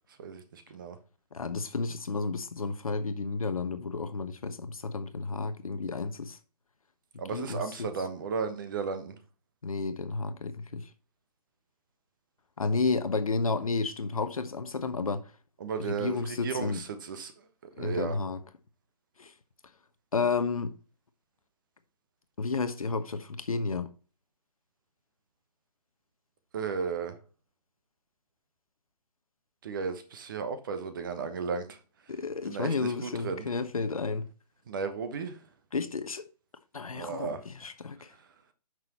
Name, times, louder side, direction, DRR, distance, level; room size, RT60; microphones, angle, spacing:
voice 1, 0.2-1.0 7.2-9.2 15.6-17.3 17.8-18.2 26.5-27.2 29.6-31.8 32.5-33.5 34.7-35.4 36.9-37.4, right 5 dB, 30° right, 1.1 m, -34 dB
voice 2, 1.3-6.4 7.3-7.9 9.6-10.8 12.6-15.3 15.8-16.8 17.8-18.4 19.2-19.3 20.1-20.8 22.4-23.9 32.1-34.3 35.7-36.2 36.7-38.1, left 4 dB, 60° left, 1.0 m, -31 dB
9.2 x 6.2 x 3.0 m
figure-of-eight pair, 140°, 21 cm